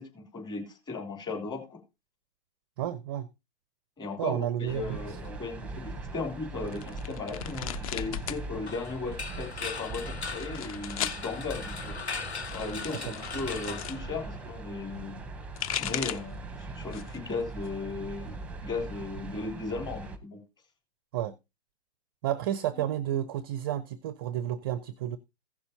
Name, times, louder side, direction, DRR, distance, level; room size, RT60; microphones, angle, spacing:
voice 1, 0.0-1.8 4.0-12.0 12.5-15.2 15.8-20.4, left 3 dB, 15° left, 3.2 m, -36 dB
voice 2, 2.8-3.3 4.2-5.2 12.9-13.1 21.1-21.3 22.2-25.2, right 11 dB, 20° right, 0.5 m, -31 dB
sound 1, 4.7-20.2, right 3 dB, 5° right, 1.0 m, -41 dB
sound 2, 6.7-8.4 8.7-9.4 10.1-11.2 12.2-14.0 15.3-16.4 16.8-17.3 17.6-18.6, left 9 dB, 35° left, 0.8 m, -37 dB
sound 3, 8.7-14.6, left 4 dB, 80° left, 1.8 m, -39 dB
16.0 x 6.9 x 2.8 m
figure-of-eight pair, 130°, 33 cm